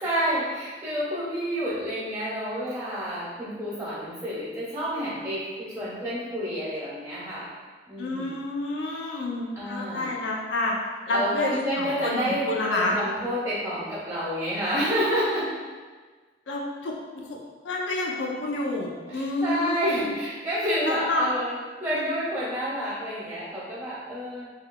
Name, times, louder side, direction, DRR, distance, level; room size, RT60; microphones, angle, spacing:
voice 1, 0.0-7.5 7.9-8.4 9.5-10.1 11.1-12.4 12.7-15.5 19.1-24.5, equal, 15° right, -10 dB, 1.3 m, -29 dB
voice 2, 8.0-10.7 11.1-12.9 16.5-16.9 17.2-17.4 17.6-20.1 20.8-21.3 21.9-22.1, left 2 dB, 85° left, -2 dB, 0.5 m, -29 dB
3.5 x 3.2 x 2.3 m, 1.4 s
head